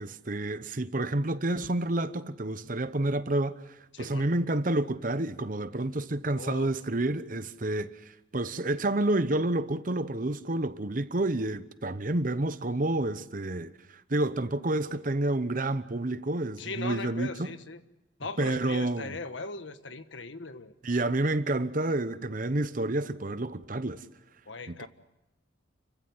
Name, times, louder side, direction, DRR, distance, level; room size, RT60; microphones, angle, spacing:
voice 1, 0.0-8.0 8.3-13.7 14.1-17.6 18.4-19.2 20.8-24.0 24.7-24.9, right 2 dB, 45° right, 0.9 m, -29 dB
voice 2, 3.9-4.3 6.3-6.7 16.6-17.8 18.2-21.1 24.5-24.9, left 3 dB, 80° left, 1.4 m, -39 dB
30.0 x 15.5 x 9.5 m
head